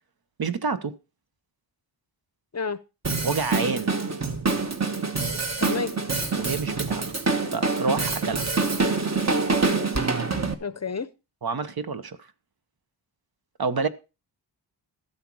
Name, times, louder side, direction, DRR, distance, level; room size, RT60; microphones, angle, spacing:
voice 1, 0.4-0.9 3.2-3.9 6.4-7.1 7.5-8.5 11.4-12.2 13.6-13.9, right 4 dB, 55° right, 1.0 m, -28 dB
Drum kit, 3.0-10.5, right 4 dB, 35° right, 1.4 m, -26 dB
voice 2, 5.2-5.9 10.6-11.1, left 5 dB, 35° left, 0.6 m, -31 dB
13.5 x 7.9 x 4.7 m
wide cardioid pair, 130°, 44 cm